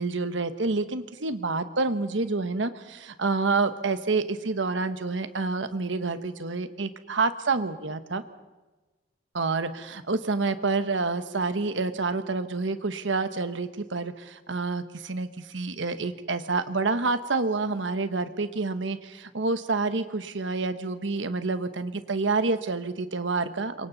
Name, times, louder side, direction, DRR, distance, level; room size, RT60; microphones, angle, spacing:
voice 1, 0.0-8.2 9.3-23.9, right 3 dB, 90° right, 10 dB, 1.1 m, -28 dB
27.0 x 24.0 x 4.1 m, 1.2 s
head